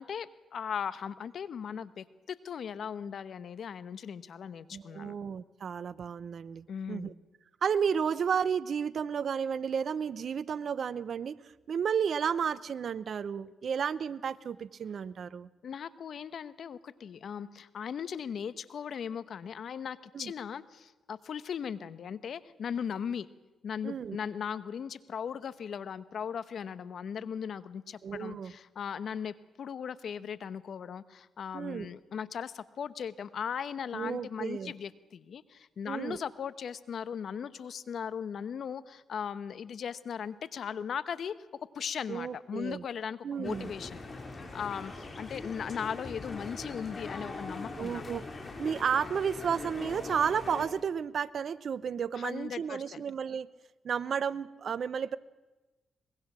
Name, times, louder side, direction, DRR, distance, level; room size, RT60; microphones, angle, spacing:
voice 1, 0.0-5.1 6.7-7.2 15.6-23.3 23.6-44.0 44.5-48.0 52.1-53.0, left 7 dB, 65° left, 15 dB, 0.9 m, -38 dB
voice 2, 4.7-7.1 7.6-11.4 11.7-15.5 20.1-20.3 23.8-24.2 28.0-28.5 31.5-31.9 33.9-34.7 35.9-36.2 42.1-42.8 43.2-43.7 47.8-48.2 48.6-53.5 53.8-55.2, right 7 dB, 60° right, 18 dB, 0.7 m, -32 dB
sound 1, 43.4-50.7, left 3 dB, 35° left, 4.8 m, -42 dB
23.5 x 21.5 x 6.2 m, 1.1 s
supercardioid pair, 60°, 0 cm